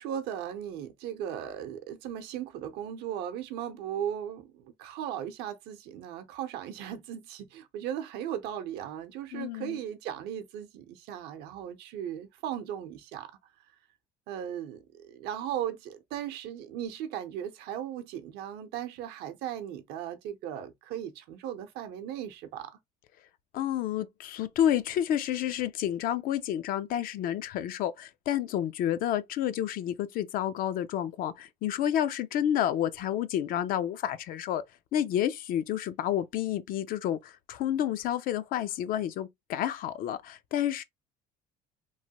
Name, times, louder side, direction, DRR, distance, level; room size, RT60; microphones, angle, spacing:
voice 1, 0.0-13.3 14.3-22.8, right 10 dB, 75° right, 0.7 m, -37 dB
voice 2, 9.3-9.8 23.5-34.6 34.9-40.8, left 11 dB, 60° left, 0.4 m, -30 dB
3.1 x 2.2 x 2.8 m
cardioid pair, 115°, 17 cm